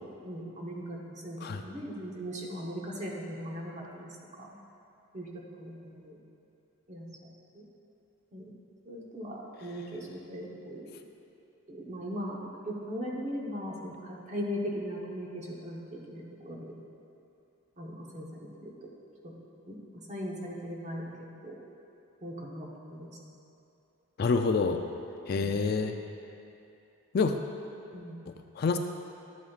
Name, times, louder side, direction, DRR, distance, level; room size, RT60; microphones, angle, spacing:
voice 1, 0.0-4.5 5.1-6.2 6.9-7.3 7.5-7.6 8.3-8.5 8.9-10.9 11.7-16.7 17.8-18.9 19.2-19.3 19.7-21.0 21.4-21.6 22.2-23.1 27.9-28.2, equal, 30° right, -3 dB, 1.0 m, -39 dB
voice 2, 24.2-24.8 25.3-26.0 27.1-27.3 28.3-28.8, left 4 dB, 45° left, 6 dB, 0.3 m, -27 dB
12.0 x 8.2 x 2.4 m, 2.7 s
head